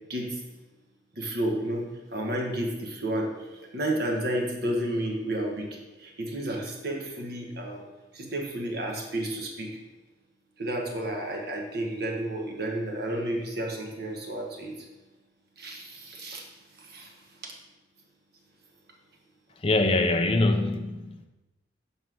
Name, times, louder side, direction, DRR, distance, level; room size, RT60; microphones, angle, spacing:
voice 1, 0.1-0.4 1.1-7.8 8.1-9.8 10.6-14.9 15.6-16.5 16.8-17.5, right 1 dB, 55° right, 0 dB, 1.3 m, -32 dB
voice 2, 19.6-21.3, left 2 dB, 30° left, 3 dB, 0.6 m, -24 dB
5.6 x 4.4 x 6.2 m, 1.1 s
head